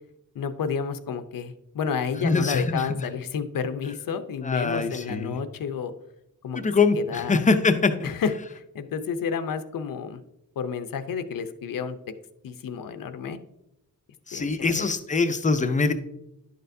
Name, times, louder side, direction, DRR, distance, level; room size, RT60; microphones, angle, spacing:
voice 1, 0.3-5.9 6.4-6.6 7.0-7.4 8.0-10.2 10.6-12.0 12.4-13.4 14.3-14.9, left 6 dB, 75° left, 9 dB, 0.7 m, -30 dB
voice 2, 2.2-2.8 4.4-5.4 6.5-8.1 14.3-15.9, left 4 dB, 20° left, 9 dB, 0.5 m, -23 dB
11.0 x 6.6 x 2.7 m, 0.83 s
wide cardioid pair, 175°, 34 cm